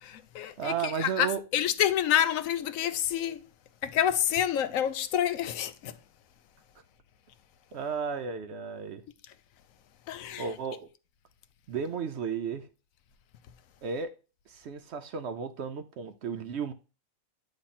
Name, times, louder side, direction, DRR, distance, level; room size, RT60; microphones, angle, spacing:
voice 1, 0.0-3.5 3.8-6.0 10.1-10.5, left 10 dB, 75° left, 1.0 m, -28 dB
voice 2, 0.6-1.4 7.7-9.0 10.4-10.9 11.7-12.7 13.8-14.2 14.5-16.7, right 6 dB, 65° right, 0.8 m, -34 dB
8.7 x 3.2 x 4.1 m
omnidirectional pair, 1.4 m